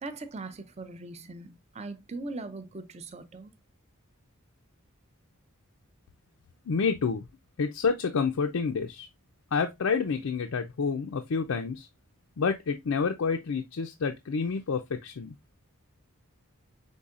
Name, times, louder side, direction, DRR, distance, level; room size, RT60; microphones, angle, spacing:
voice 1, 0.0-3.5, right 2 dB, 30° right, 0.5 m, -40 dB
voice 2, 6.7-7.2 7.6-9.1 9.5-11.9 12.4-15.3, left 5 dB, 75° left, 0.5 m, -28 dB
5.5 x 3.6 x 2.4 m
head